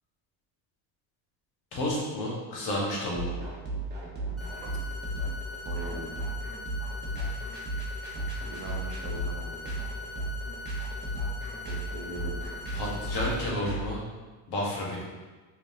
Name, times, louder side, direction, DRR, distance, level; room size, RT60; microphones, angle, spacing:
voice 1, 1.7-3.5 12.7-14.0 14.5-15.0, left 1 dB, 65° left, -4 dB, 1.3 m, -31 dB
sound 1, 3.2-13.8, right 1 dB, 25° right, 1.1 m, -34 dB
sound 2, 4.4-13.4, left 5 dB, ahead, 0.5 m, -42 dB
voice 2, 5.6-6.2 8.4-9.7 11.6-12.4, right 2 dB, 55° right, 0 dB, 0.8 m, -41 dB
3.7 x 3.1 x 2.7 m, 1.3 s
supercardioid pair, 105°, 42 cm